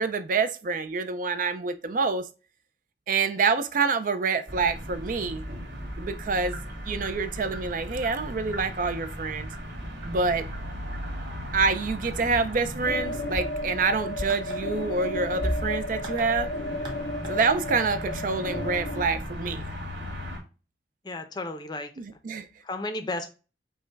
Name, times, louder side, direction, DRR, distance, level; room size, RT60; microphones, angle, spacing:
voice 1, 0.0-2.3 3.1-5.4 6.0-9.5 10.0-10.5 11.5-16.5 17.3-19.7 22.0-22.5, right 4 dB, 50° right, 0.4 m, -27 dB
sound 1, 4.5-20.4, equal, 75° right, 1.9 m, -36 dB
sound 2, 6.4-17.9, right 3 dB, 25° right, 1.3 m, -49 dB
sound 3, 12.8-19.1, left 2 dB, 70° left, 0.5 m, -33 dB
voice 2, 21.0-21.9 22.6-23.3, left 2 dB, 25° left, 0.6 m, -33 dB
5.3 x 2.2 x 4.5 m
head